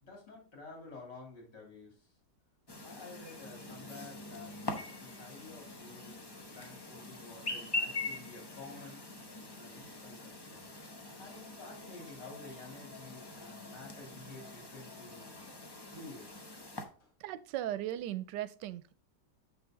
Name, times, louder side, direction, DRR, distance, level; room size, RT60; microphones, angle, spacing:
voice 1, 0.0-1.9 2.8-4.5 5.0-6.1 6.5-9.0 9.5-10.7 11.0-15.4 15.9-16.5 17.0-17.1, left 3 dB, 80° left, -1 dB, 3.5 m, -51 dB
Chirp tweet, 2.7-16.8, left 2 dB, 25° left, 0.6 m, -43 dB
voice 2, 17.2-18.9, right 13 dB, 90° right, 15 dB, 1.2 m, -37 dB
6.8 x 6.1 x 3.7 m, 0.36 s
omnidirectional pair, 1.8 m